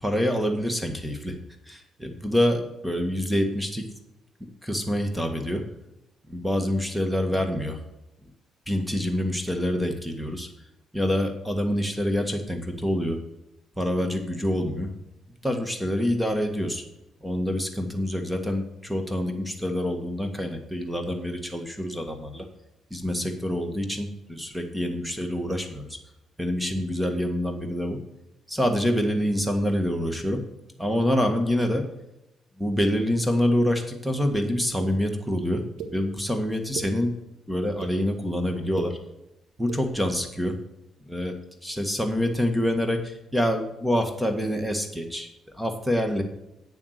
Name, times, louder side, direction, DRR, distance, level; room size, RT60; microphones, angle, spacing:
voice 1, 0.0-1.4 1.7-3.9 4.6-5.6 6.3-7.8 8.7-10.5 10.9-13.2 13.8-14.9 15.4-16.8 17.2-22.4 22.9-26.0 26.4-28.0 28.5-30.4 30.8-31.9 32.6-35.6 35.9-37.2 37.5-39.0 39.6-40.5 41.0-41.4 41.6-45.3 45.6-46.2, equal, 5° right, 5 dB, 1.7 m, -26 dB
sound 1, 34.8-34.9 35.8-35.9 36.5-36.9 37.6-37.9 38.6-38.9 39.6-39.8, right 6 dB, 80° right, 1.3 m, -36 dB
8.7 x 7.2 x 6.6 m, 0.90 s
cardioid pair, 90°, 0 cm